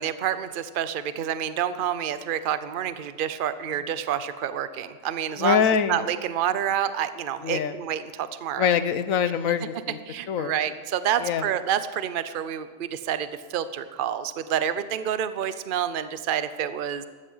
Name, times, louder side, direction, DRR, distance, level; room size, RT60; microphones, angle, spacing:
voice 1, 0.0-8.7 10.1-17.0, right 9 dB, 50° right, 13 dB, 0.8 m, -28 dB
voice 2, 5.4-6.0 7.4-7.7 8.6-10.0 10.3-10.5 11.2-11.5, left 8 dB, 85° left, 12 dB, 1.2 m, -24 dB
15.5 x 12.5 x 5.6 m, 1.4 s
omnidirectional pair, 1.4 m